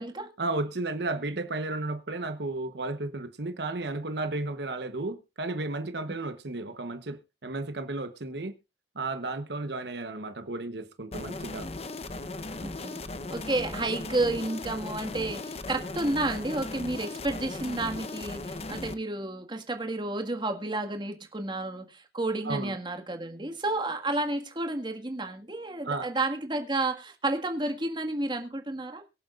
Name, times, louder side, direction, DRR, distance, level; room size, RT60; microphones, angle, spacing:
voice 1, 0.4-8.5 8.9-11.7 22.4-22.7 25.8-26.1, right 2 dB, 70° right, 1.0 m, -33 dB
sound 1, 11.1-18.9, left 2 dB, 35° left, 0.9 m, -37 dB
voice 2, 12.6-13.0 13.3-29.0, right 2 dB, 25° right, 1.7 m, -31 dB
23.0 x 7.8 x 2.5 m
head